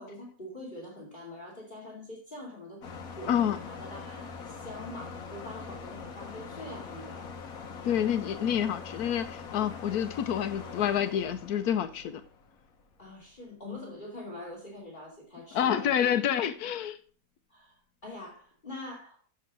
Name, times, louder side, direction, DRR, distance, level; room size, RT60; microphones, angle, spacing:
voice 1, 0.0-2.8 3.1-7.2 13.0-15.9 17.5-17.7 18.0-19.2, left 1 dB, 30° left, -1 dB, 2.8 m, -44 dB
sound 1, 2.8-13.0, left 5 dB, 65° left, 1.6 m, -43 dB
voice 2, 3.3-3.6 7.8-12.2 15.5-17.0, left 9 dB, 80° left, 10 dB, 1.2 m, -28 dB
7.8 x 7.6 x 6.1 m, 0.43 s
omnidirectional pair, 1.6 m